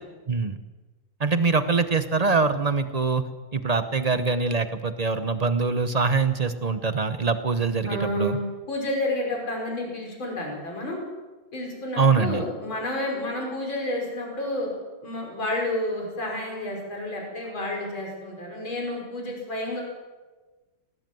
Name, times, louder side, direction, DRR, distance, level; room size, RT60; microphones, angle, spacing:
voice 1, 0.3-0.6 1.2-3.2 3.5-8.4 12.0-12.4, right 4 dB, 65° right, 10 dB, 0.4 m, -23 dB
voice 2, 7.8-11.0 11.5-14.7 15.0-19.8, left 1 dB, 70° left, -1 dB, 6.6 m, -30 dB
20.0 x 19.0 x 7.8 m, 1.2 s
omnidirectional pair, 2.3 m